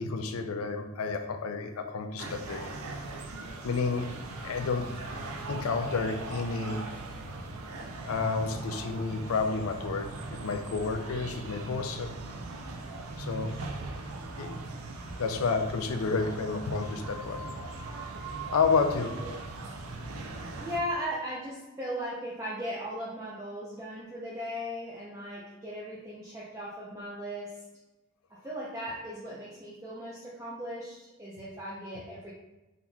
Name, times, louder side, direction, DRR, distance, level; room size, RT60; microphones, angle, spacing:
voice 1, 0.0-2.7 3.6-4.1 4.4-4.9 5.5-6.8 8.0-10.1 10.4-12.1 13.2-13.5 14.4-14.5 15.2-17.6 18.5-19.1, left 4 dB, 80° left, 7 dB, 0.5 m, -30 dB
sound 1, 2.2-20.8, right 2 dB, 75° right, 0.5 m, -40 dB
voice 2, 18.7-19.3 20.6-27.6 28.4-32.3, equal, 15° right, -6 dB, 0.5 m, -38 dB
4.1 x 3.9 x 2.3 m, 1.0 s
head